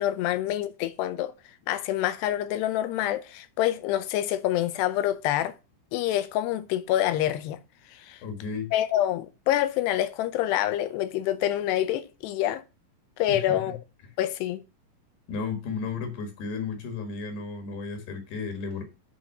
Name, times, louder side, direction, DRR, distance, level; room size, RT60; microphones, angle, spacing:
voice 1, 0.0-1.3 1.7-5.5 5.9-7.6 7.9-8.2 8.7-12.6 13.2-13.8 14.2-14.6, left 12 dB, 80° left, 2.5 m, -26 dB
voice 2, 8.2-8.7 13.3-13.8 15.3-18.8, left 5 dB, 65° left, 3.5 m, -33 dB
9.0 x 5.6 x 5.8 m
omnidirectional pair, 5.4 m